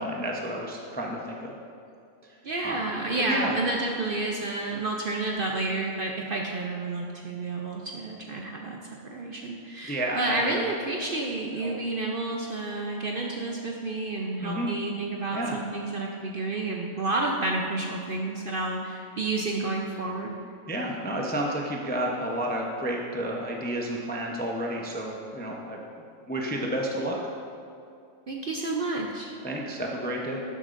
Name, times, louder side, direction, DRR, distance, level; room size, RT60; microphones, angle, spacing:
voice 1, 0.0-1.5 2.6-2.9 3.2-3.5 9.9-10.6 11.6-11.8 14.4-14.7 15.3-15.6 20.7-25.8 26.3-27.2 29.4-30.4, right 1 dB, 10° left, -1 dB, 0.4 m, -31 dB
voice 2, 2.4-20.3 28.3-29.3, right 2 dB, 55° right, 0 dB, 0.6 m, -30 dB
11.5 x 7.8 x 2.5 m, 2.5 s
omnidirectional pair, 1.5 m